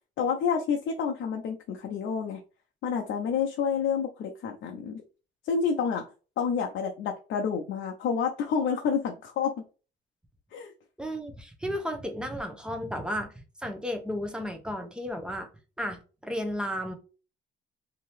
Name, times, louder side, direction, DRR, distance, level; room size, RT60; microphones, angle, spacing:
voice 1, 0.2-2.4 2.8-5.0 5.4-6.0 6.4-9.5 10.5-10.7, left 6 dB, 75° left, 0.6 m, -29 dB
voice 2, 11.0-13.3 13.6-15.5 15.8-16.9, equal, 5° right, 0.8 m, -33 dB
2.9 x 2.7 x 3.2 m
cardioid pair, 90°, 20 cm